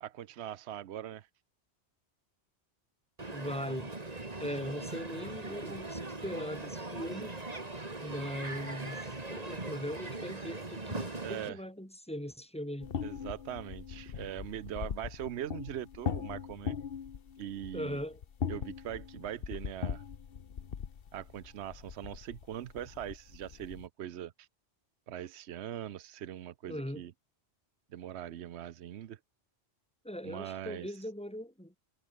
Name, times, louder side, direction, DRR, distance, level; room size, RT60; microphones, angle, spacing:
voice 1, 0.0-1.3 11.2-11.6 13.0-16.8 17.4-18.0 18.5-20.0 21.1-24.5 25.1-27.1 27.9-29.2 30.2-30.9, right 11 dB, 80° right, 1.0 m, -41 dB
Crowd, 3.2-11.5, right 2 dB, 35° right, 2.4 m, -40 dB
voice 2, 3.3-3.9 4.4-7.4 8.0-12.9 17.7-18.2 26.7-27.0 30.0-31.8, equal, 5° left, 3.4 m, -40 dB
sound 1, 12.8-23.9, left 7 dB, 60° left, 1.2 m, -40 dB
omnidirectional pair, 1.1 m